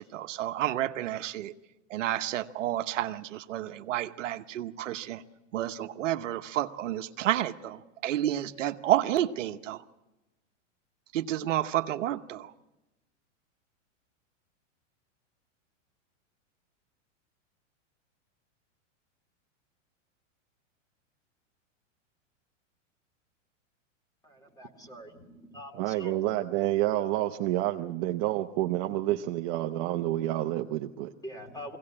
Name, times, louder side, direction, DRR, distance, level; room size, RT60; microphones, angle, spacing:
voice 1, 0.0-1.5 1.9-5.2 5.5-9.8 11.1-12.5, right 13 dB, 75° right, 8 dB, 1.0 m, -30 dB
voice 2, 24.2-26.1 31.2-31.8, equal, 10° left, 4 dB, 2.5 m, -44 dB
voice 3, 25.7-31.1, right 15 dB, 40° right, 5 dB, 0.8 m, -29 dB
23.0 x 17.5 x 8.6 m, 1.0 s
supercardioid pair, 140°, 38 cm